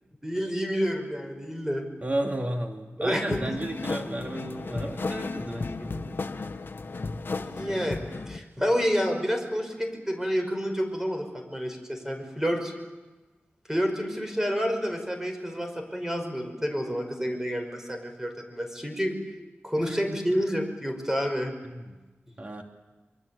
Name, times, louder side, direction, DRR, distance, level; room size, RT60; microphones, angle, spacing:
voice 1, 0.2-1.8 3.0-3.4 7.4-12.7 13.7-19.2 19.6-21.5, equal, 10° right, 5 dB, 5.4 m, -29 dB
voice 2, 2.0-6.2 19.7-20.0 21.7-22.0 22.4-22.6, right 1 dB, 35° right, 3 dB, 2.6 m, -33 dB
sound 1, 3.3-8.4, left 3 dB, 55° left, 1.3 m, -34 dB
26.0 x 23.5 x 8.4 m, 1.2 s
wide cardioid pair, 65°, 4 cm